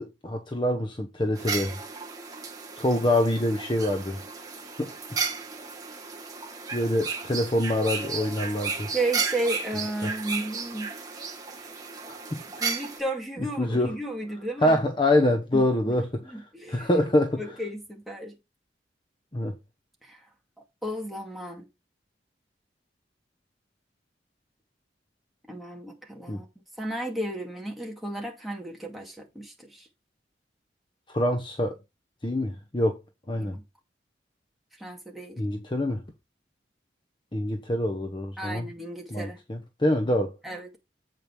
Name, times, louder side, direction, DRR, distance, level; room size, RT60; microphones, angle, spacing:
voice 1, 0.0-1.8 2.8-4.2 4.8-5.2 6.7-8.9 10.0-10.1 12.1-12.7 13.4-13.9 14.6-16.2 16.7-17.4 19.3-19.5 26.3-26.4 31.1-31.8 32.2-33.0 33.3-33.6 35.4-36.0 37.3-38.7 39.1-40.3, left 1 dB, 25° left, 0.9 m, -25 dB
sound 1, 1.4-13.0, right 5 dB, 20° right, 1.6 m, -34 dB
voice 2, 8.9-10.9 12.6-14.8 15.5-15.9 16.3-16.9 17.4-18.3 20.0-20.2 20.8-21.7 25.5-26.5 26.8-29.9 33.4-33.6 34.8-35.4 38.4-39.4 40.4-40.8, right 1 dB, ahead, 2.2 m, -33 dB
8.0 x 5.2 x 4.6 m
head